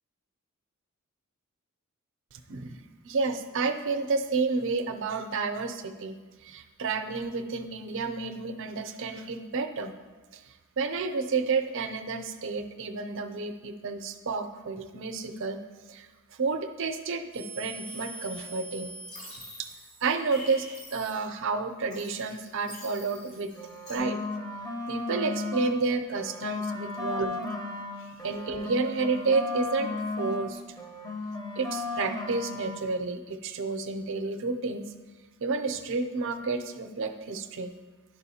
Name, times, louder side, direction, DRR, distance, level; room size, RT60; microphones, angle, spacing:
voice 1, 2.5-6.1 6.4-9.9 10.8-15.6 15.9-16.1 16.4-18.9 19.6-19.7 20.0-20.7 20.9-23.5 23.9-24.2 24.9-27.4 28.2-29.9 30.2-30.6 31.6-34.9 35.4-37.7, right 4 dB, 60° right, 7 dB, 0.5 m, -30 dB
sound 1, 17.3-21.5 21.9-24.0, right 1 dB, 70° left, 2.2 m, -44 dB
sound 2, 23.5-25.8 26.1-30.5 30.8-32.8, left 2 dB, 15° left, 0.6 m, -35 dB
10.5 x 4.8 x 2.8 m, 1.3 s
head